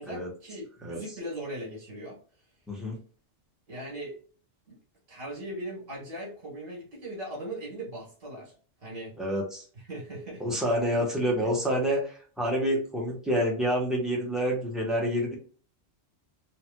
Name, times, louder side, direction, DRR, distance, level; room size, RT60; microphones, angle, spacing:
voice 1, 0.0-2.2 3.7-4.2 4.7-4.8 5.1-8.5 8.8-9.1 9.9-10.6 11.2-11.5, right 1 dB, 75° right, -2 dB, 1.5 m, -39 dB
voice 2, 2.7-3.0 9.2-9.6 10.4-15.3, equal, ahead, -3 dB, 0.9 m, -28 dB
3.0 x 2.9 x 2.2 m, 0.40 s
omnidirectional pair, 1.3 m